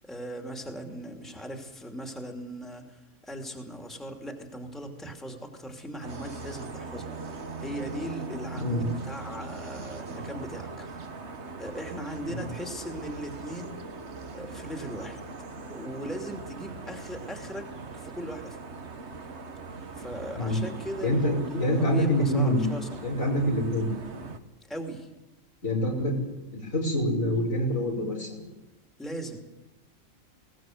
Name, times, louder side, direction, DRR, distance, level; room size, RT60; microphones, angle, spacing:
voice 1, 0.0-7.1 7.6-11.0 11.6-13.8 14.3-15.2 15.7-17.7 17.9-18.7 20.0-22.9 24.7-25.1 29.0-29.5, equal, ahead, 3 dB, 2.7 m, -38 dB
sound 1, 6.0-24.4, right 4 dB, 55° right, 1.7 m, -40 dB
voice 2, 21.0-22.6 23.0-23.9 25.6-26.2 26.5-28.4, equal, 75° left, 0 dB, 5.9 m, -26 dB
20.5 x 18.5 x 7.9 m, 0.96 s
omnidirectional pair, 1.4 m